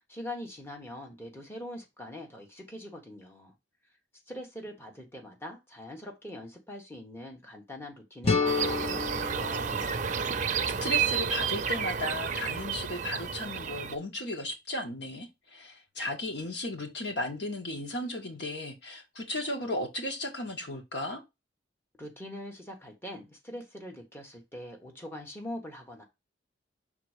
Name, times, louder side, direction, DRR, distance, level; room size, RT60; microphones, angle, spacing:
voice 1, 0.1-3.5 4.3-10.0 22.0-26.0, left 1 dB, 15° left, 1.4 m, -43 dB
sound 1, 8.2-11.1, left 4 dB, 35° left, 0.8 m, -31 dB
sound 2, 8.5-14.0, right 7 dB, 45° right, 0.5 m, -31 dB
voice 2, 10.8-21.2, left 1 dB, 70° left, 1.6 m, -35 dB
5.9 x 3.7 x 4.9 m
head